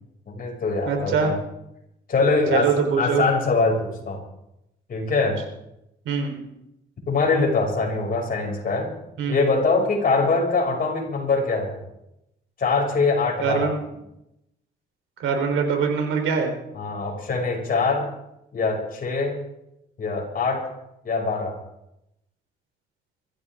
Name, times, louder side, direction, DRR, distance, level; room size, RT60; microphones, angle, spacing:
voice 1, 0.3-1.4 2.1-4.2 4.9-5.4 7.1-8.9 9.3-11.8 12.6-13.8 16.7-18.1 18.5-19.4 20.0-20.6 21.0-21.6, left 3 dB, 45° left, -1 dB, 6.4 m, -23 dB
voice 2, 0.8-1.3 2.5-3.2 6.1-6.4 9.2-9.4 13.4-13.7 15.2-16.5, right 6 dB, 85° right, 4 dB, 3.7 m, -23 dB
22.5 x 14.5 x 3.7 m, 0.85 s
cardioid pair, 90°, 20 cm